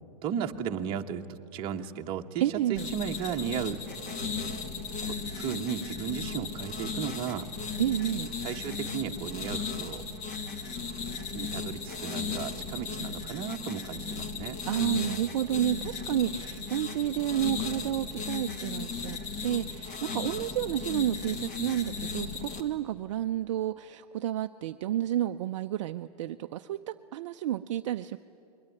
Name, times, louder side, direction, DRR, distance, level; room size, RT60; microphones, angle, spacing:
voice 1, 0.2-3.8 5.0-7.5 8.4-10.0 11.3-14.6, right 8 dB, 25° right, 4 dB, 1.1 m, -35 dB
voice 2, 2.4-2.9 7.8-8.3 14.7-19.2 19.4-28.2, right 12 dB, 45° right, 7 dB, 0.5 m, -30 dB
sound 1, 2.8-22.6, left 5 dB, 30° left, 2.1 m, -36 dB
26.5 x 22.0 x 10.0 m, 2.8 s
hypercardioid pair, 150°, 21 cm